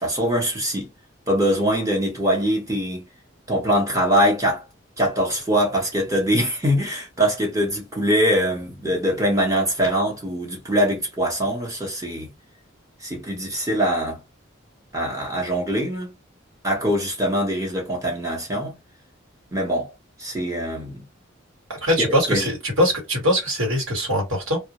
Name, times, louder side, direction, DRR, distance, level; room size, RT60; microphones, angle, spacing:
voice 1, 0.0-0.9 1.3-3.1 3.5-4.6 5.0-12.3 13.0-14.2 14.9-16.1 16.6-18.8 19.5-19.9 20.2-21.0 22.0-22.5, equal, 15° right, 0.8 m, -23 dB
voice 2, 21.8-24.6, equal, 85° right, 1.3 m, -22 dB
2.2 x 2.0 x 2.9 m
head